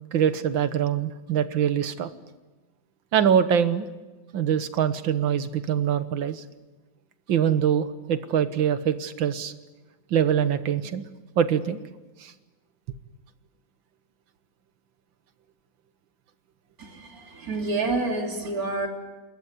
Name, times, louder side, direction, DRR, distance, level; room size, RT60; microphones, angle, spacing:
voice 1, 0.1-2.1 3.1-3.9 4.3-6.4 7.3-9.5 10.1-11.1 11.4-11.8 12.2-12.3, right 8 dB, 85° right, 11 dB, 1.9 m, -24 dB
voice 2, 16.8-18.9, right 3 dB, 50° right, 2 dB, 3.6 m, -28 dB
28.5 x 14.0 x 9.6 m, 1.2 s
omnidirectional pair, 2.1 m